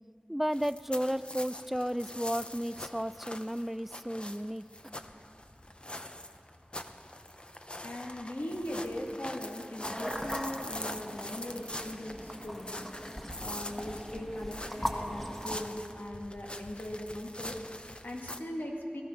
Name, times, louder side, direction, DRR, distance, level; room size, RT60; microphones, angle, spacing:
voice 1, 0.3-4.6, equal, 5° right, 15 dB, 0.4 m, -33 dB
sound 1, 0.5-18.4, left 1 dB, 35° left, 0.7 m, -44 dB
voice 2, 7.8-12.9 13.4-19.0, left 1 dB, 70° left, -1 dB, 2.0 m, -39 dB
sound 2, 9.8-15.6, equal, 10° left, 1.4 m, -39 dB
18.5 x 13.0 x 5.8 m, 2.6 s
wide cardioid pair, 45°, 3 cm